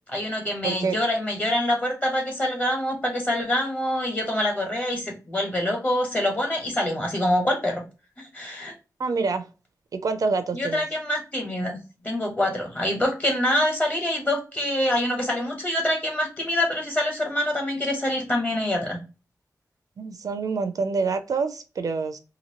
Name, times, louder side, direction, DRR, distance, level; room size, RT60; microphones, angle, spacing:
voice 1, 0.1-7.8 8.2-8.7 10.5-19.0, left 1 dB, 25° left, 0 dB, 1.3 m, -25 dB
voice 2, 0.6-1.0 9.0-9.5 9.9-10.8 20.0-22.2, right 4 dB, 65° right, 9 dB, 0.4 m, -26 dB
2.9 x 2.6 x 2.8 m, 0.31 s
wide cardioid pair, 115°, 7 cm